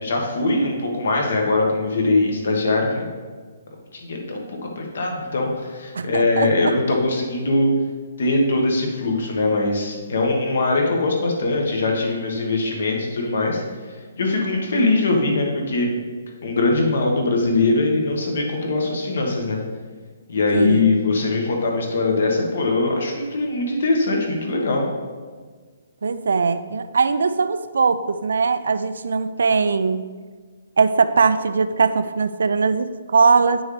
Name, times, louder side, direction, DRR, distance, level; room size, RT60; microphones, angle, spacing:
voice 1, 0.0-3.1 3.9-7.7 8.2-15.9 16.4-19.6 20.3-24.9, left 2 dB, 55° left, 1 dB, 1.5 m, -21 dB
voice 2, 5.9-6.8 20.5-20.9 26.0-30.1 30.8-33.6, right 4 dB, 80° right, 12 dB, 0.4 m, -20 dB
9.2 x 6.2 x 3.3 m, 1.5 s
hypercardioid pair, 180°, 0 cm